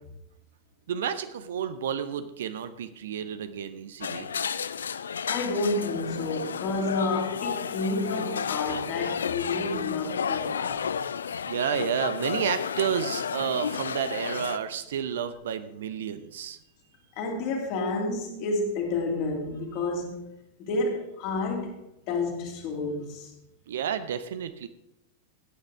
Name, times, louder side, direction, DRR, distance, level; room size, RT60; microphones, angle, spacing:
voice 1, 0.9-4.3 11.4-16.6 23.7-24.7, right 8 dB, 60° right, 0.7 m, -31 dB
sound 1, 4.0-14.6, left 7 dB, 70° left, 0.3 m, -32 dB
voice 2, 5.3-11.0 17.2-20.3 20.6-21.8 22.1-23.3, left 2 dB, 45° left, 2.7 m, -30 dB
16.0 x 9.0 x 3.5 m
figure-of-eight pair, 90°, 0 cm